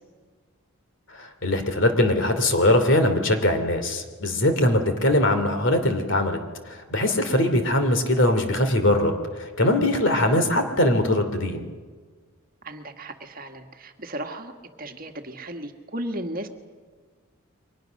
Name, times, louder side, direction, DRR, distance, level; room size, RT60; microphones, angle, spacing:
voice 1, 1.1-6.4 6.6-11.7, left 1 dB, 55° left, 7 dB, 2.9 m, -21 dB
voice 2, 12.6-14.5 14.8-16.5, right 1 dB, 40° right, 5 dB, 1.7 m, -35 dB
30.0 x 24.0 x 6.5 m, 1.5 s
head